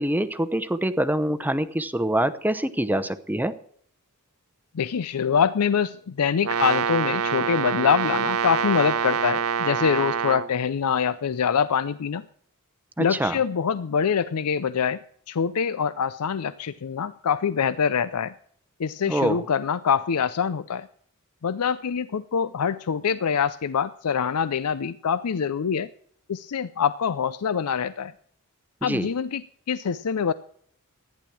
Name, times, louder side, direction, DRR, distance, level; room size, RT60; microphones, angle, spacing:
voice 1, 0.0-3.5 13.0-13.3 19.1-19.4 28.8-29.1, right 1 dB, 10° right, 13 dB, 0.7 m, -25 dB
voice 2, 4.7-12.2 13.0-18.3 18.8-20.9 21.4-25.9 26.3-28.1 28.8-30.3, left 7 dB, 90° left, 15 dB, 0.5 m, -25 dB
Brass instrument, 6.4-10.5, right 7 dB, 70° right, 0.8 m, -25 dB
14.5 x 10.5 x 6.1 m, 0.62 s
head